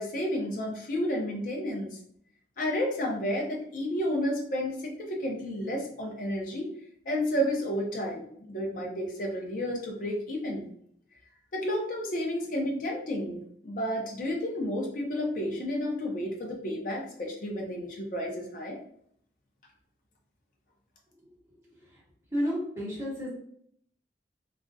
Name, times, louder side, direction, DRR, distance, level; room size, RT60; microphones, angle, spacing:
voice 1, 0.0-2.0 2.6-6.7 7.1-10.7 11.5-18.8, equal, 45° left, 0 dB, 0.5 m, -31 dB
voice 2, 21.5-22.0 22.3-23.3, equal, 15° right, -8 dB, 0.9 m, -32 dB
2.3 x 2.1 x 2.5 m, 0.66 s
head